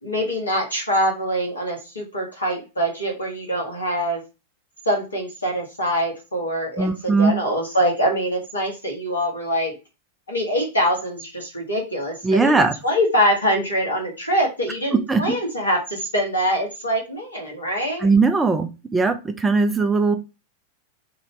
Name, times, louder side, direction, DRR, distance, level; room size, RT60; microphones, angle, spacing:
voice 1, 0.0-4.2 4.8-9.7 10.3-18.1, equal, 80° left, 0 dB, 1.3 m, -24 dB
voice 2, 6.8-7.3 12.2-12.7 14.9-15.2 18.0-20.2, right 3 dB, 10° right, 7 dB, 0.4 m, -19 dB
3.0 x 2.7 x 3.2 m, 0.28 s
figure-of-eight pair, 90°, 0 cm